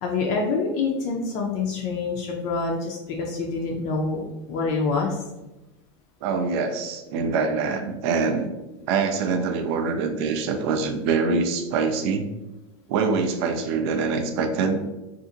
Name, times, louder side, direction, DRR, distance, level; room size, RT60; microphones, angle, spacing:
voice 1, 0.0-5.2, left 4 dB, 50° left, 0 dB, 0.4 m, -26 dB
voice 2, 6.2-8.5 8.9-12.3 12.9-14.8, right 4 dB, 60° right, 6 dB, 0.4 m, -24 dB
2.7 x 2.4 x 2.4 m, 1.0 s
supercardioid pair, 145°, 15 cm